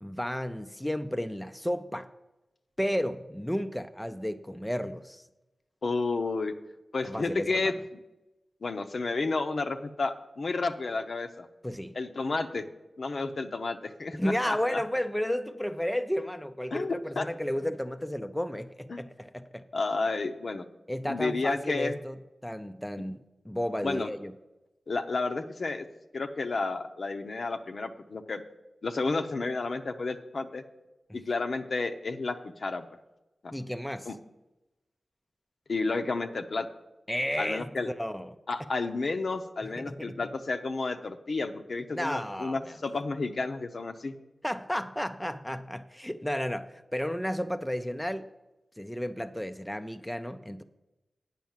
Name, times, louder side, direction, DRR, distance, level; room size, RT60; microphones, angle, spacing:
voice 1, 0.0-2.1 2.8-5.2 7.1-7.7 11.6-12.0 14.1-19.7 20.9-22.2 22.4-23.2 23.4-24.3 31.1-31.2 33.5-34.1 37.1-38.4 39.6-40.3 41.9-42.8 44.4-48.3 48.8-50.6, equal, 5° left, 8 dB, 0.5 m, -33 dB
voice 2, 5.8-6.5 6.9-7.7 8.6-11.5 11.9-12.7 13.0-14.8 16.7-17.2 18.9-19.1 19.7-20.6 21.0-22.0 23.8-24.1 24.9-25.8 26.1-28.4 28.8-30.6 31.1-32.9 33.4-33.6 34.1-34.2 35.7-36.7 37.4-37.9 38.5-44.1, left 3 dB, 65° left, 6 dB, 0.7 m, -31 dB
9.2 x 5.7 x 7.3 m, 1.0 s
wide cardioid pair, 65°, 0 cm